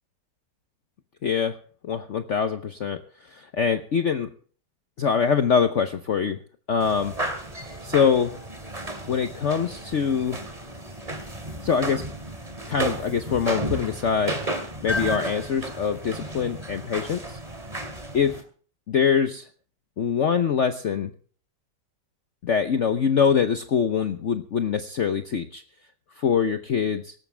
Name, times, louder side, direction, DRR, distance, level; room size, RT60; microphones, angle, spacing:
voice 1, 1.2-1.6 1.8-4.3 5.0-6.4 6.7-7.1 7.8-8.4 9.1-10.4 11.6-12.0 12.7-14.4 14.8-17.4 18.1-18.4 18.9-19.5 20.0-21.1 22.4-25.6 26.2-27.1, left 6 dB, 50° left, 8 dB, 1.0 m, -24 dB
sound 1, 6.8-18.4, right 1 dB, 20° right, 2.6 m, -33 dB
18.0 x 14.5 x 3.3 m, 0.43 s
omnidirectional pair, 1.9 m